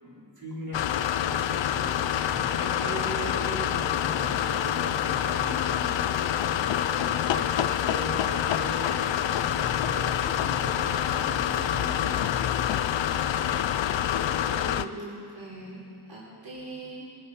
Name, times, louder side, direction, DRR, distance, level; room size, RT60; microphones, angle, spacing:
voice 1, 0.0-6.2 6.5-13.0, right 1 dB, 50° right, -7 dB, 4.3 m, -40 dB
sound 1, 0.7-14.9, left 10 dB, 80° left, 0.5 m, -27 dB
sound 2, 1.3-14.6, left 2 dB, 25° left, 3.8 m, -43 dB
voice 2, 14.4-15.8 16.1-17.1, right 2 dB, 85° right, -6 dB, 3.7 m, -41 dB
22.5 x 10.5 x 4.3 m, 2.3 s
wide cardioid pair, 75°, 44 cm